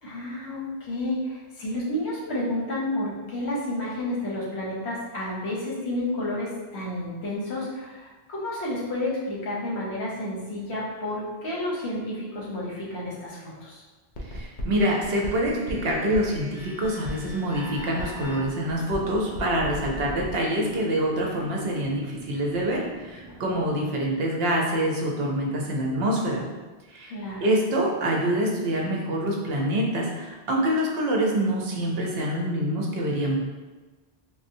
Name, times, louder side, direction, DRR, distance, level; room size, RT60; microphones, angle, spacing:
voice 1, 0.0-13.8 27.1-27.5, left 1 dB, 90° left, -5 dB, 1.1 m, -31 dB
sound 1, 14.1-20.3, equal, 55° left, 0.6 m, -37 dB
voice 2, 14.3-26.4 26.9-27.1 27.4-33.4, right 1 dB, 70° right, -1 dB, 0.8 m, -26 dB
sound 2, 17.3-23.7, equal, 15° left, 0.7 m, -46 dB
3.6 x 2.0 x 2.6 m, 1.2 s
omnidirectional pair, 1.1 m